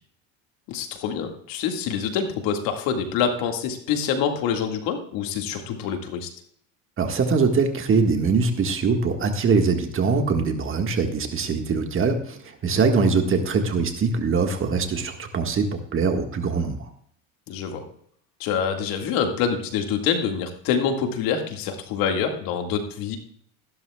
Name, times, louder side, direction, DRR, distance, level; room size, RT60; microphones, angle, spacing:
voice 1, 0.7-6.3 13.1-13.2 17.5-17.8 18.4-23.2, left 7 dB, 60° left, 4 dB, 2.1 m, -26 dB
voice 2, 7.0-16.9, right 4 dB, 35° right, 5 dB, 1.8 m, -22 dB
14.5 x 12.0 x 2.4 m, 0.64 s
supercardioid pair, 95°, 38 cm